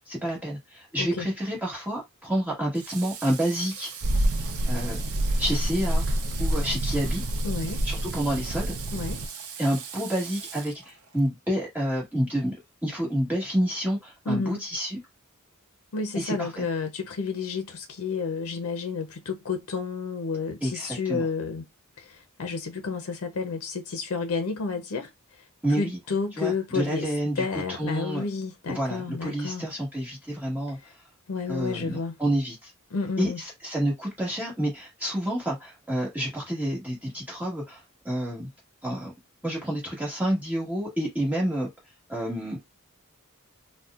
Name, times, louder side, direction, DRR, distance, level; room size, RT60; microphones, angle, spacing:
voice 1, 0.1-3.9 4.7-5.0 5.4-6.0 6.4-7.2 7.8-8.7 9.6-12.5 12.8-15.0 16.1-16.6 20.6-21.2 25.6-26.0 26.4-28.2 28.7-30.9 31.5-32.7 33.2-38.5 38.8-39.1 39.4-41.7 42.1-42.6, right 1 dB, 5° right, 1.3 m, -29 dB
Water / Water tap faucet, 2.7-11.3, right 7 dB, 80° right, 0.8 m, -41 dB
sound 1, 4.0-9.3, right 1 dB, 50° right, 0.5 m, -27 dB
voice 2, 7.4-7.8 8.9-9.2 14.3-14.6 15.9-21.6 22.0-25.4 25.8-27.1 27.4-29.6 31.3-32.2 32.9-33.4, left 4 dB, 70° left, 0.5 m, -31 dB
4.1 x 2.1 x 2.4 m
head